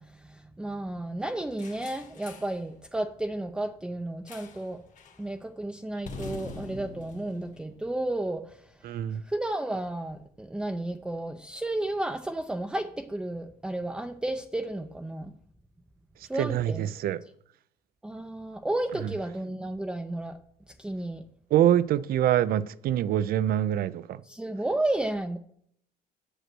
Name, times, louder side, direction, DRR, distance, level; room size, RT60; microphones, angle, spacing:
voice 1, 0.0-4.8 5.2-8.6 9.2-15.3 16.2-16.9 18.0-20.4 20.8-21.2 24.2-25.4, right 1 dB, 5° right, 0.5 m, -32 dB
sound 1, 1.6-2.6 4.3-4.7 5.0-5.2 6.0-8.4, left 3 dB, 45° left, 1.4 m, -44 dB
voice 2, 8.8-9.2 16.4-17.2 19.0-19.1 21.5-24.2, right 11 dB, 60° right, 0.5 m, -25 dB
8.0 x 6.4 x 6.1 m
cardioid pair, 110°, 17 cm